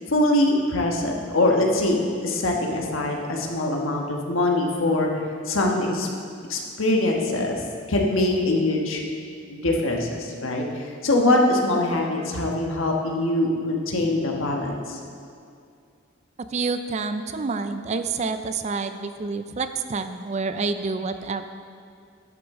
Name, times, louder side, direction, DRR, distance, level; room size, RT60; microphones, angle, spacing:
voice 1, 0.1-5.1 5.5-6.1 6.5-7.6 7.9-9.0 9.5-15.0, left 1 dB, 85° left, 0 dB, 1.3 m, -23 dB
voice 2, 16.5-21.4, right 4 dB, 35° right, 9 dB, 0.4 m, -28 dB
11.0 x 8.0 x 3.7 m, 2.3 s
head